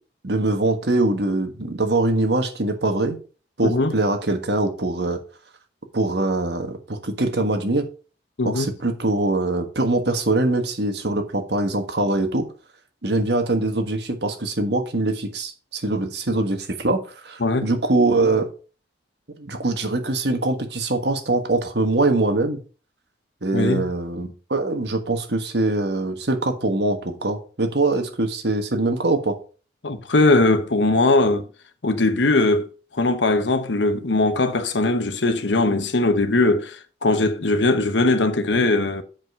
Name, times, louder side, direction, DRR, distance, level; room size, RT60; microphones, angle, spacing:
voice 1, 0.2-3.2 3.6-5.2 5.9-7.9 8.4-12.5 13.0-18.5 19.4-22.6 23.4-29.4, right 2 dB, 65° right, 1.5 m, -23 dB
voice 2, 3.6-3.9 8.4-8.7 17.4-17.7 23.5-23.9 29.8-31.5 31.8-32.7 32.9-39.0, left 2 dB, 75° left, 1.0 m, -20 dB
7.4 x 5.1 x 5.5 m
head